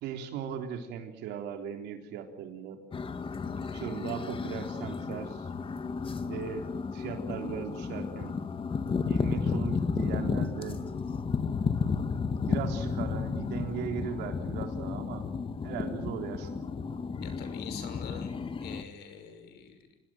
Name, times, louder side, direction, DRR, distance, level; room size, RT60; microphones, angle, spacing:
voice 1, 0.0-2.8 3.5-5.5 6.2-8.4 9.0-10.8 12.5-15.2 15.6-16.7, right 7 dB, 85° right, 5 dB, 3.9 m, -38 dB
sound 1, 2.9-18.8, left 5 dB, 30° left, 1.9 m, -33 dB
voice 2, 17.2-18.3 18.6-19.8, left 7 dB, 75° left, 9 dB, 5.9 m, -44 dB
26.0 x 18.5 x 9.2 m, 0.83 s
cardioid pair, 110°, 17 cm